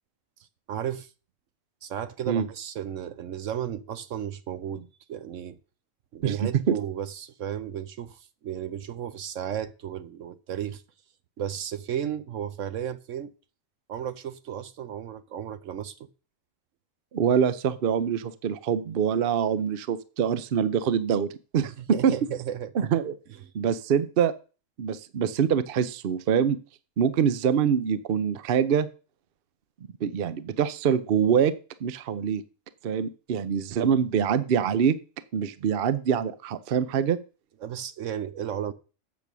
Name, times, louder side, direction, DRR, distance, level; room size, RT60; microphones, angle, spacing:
voice 1, 0.7-1.1 1.8-5.6 6.1-10.8 11.4-13.3 13.9-16.1 21.8-22.7 37.6-38.7, right 9 dB, 70° right, 1.1 m, -34 dB
voice 2, 6.2-6.8 17.1-22.1 22.7-23.1 23.5-24.3 24.8-26.6 27.0-28.9 30.0-31.5 31.8-32.4 32.8-34.9 35.3-37.2, right 7 dB, 55° right, 0.8 m, -24 dB
8.3 x 6.8 x 6.1 m
omnidirectional pair, 1.4 m